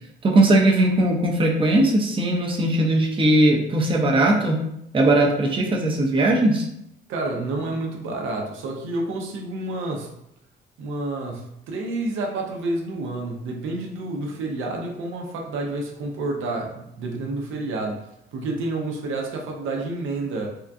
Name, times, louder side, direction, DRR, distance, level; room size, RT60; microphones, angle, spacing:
voice 1, 0.2-4.6 4.9-6.6, right 1 dB, 25° right, -1 dB, 0.6 m, -19 dB
voice 2, 7.1-10.1 10.8-18.0 18.3-20.5, right 2 dB, 80° right, 0 dB, 0.6 m, -29 dB
3.6 x 2.2 x 2.5 m, 0.79 s
cardioid pair, 90°, 20 cm